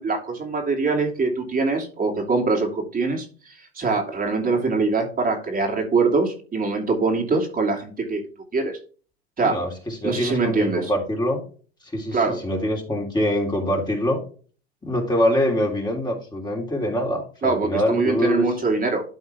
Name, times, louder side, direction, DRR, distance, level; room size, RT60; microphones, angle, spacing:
voice 1, 0.0-8.2 8.5-8.8 9.4-9.5 10.0-10.9 12.1-12.4 17.4-19.0, right 3 dB, 30° right, 0 dB, 3.0 m, -23 dB
voice 2, 9.4-11.4 11.9-14.2 14.8-18.4, equal, 15° left, 0 dB, 3.2 m, -24 dB
12.5 x 4.3 x 3.5 m, 0.39 s
hypercardioid pair, 90°, 31 cm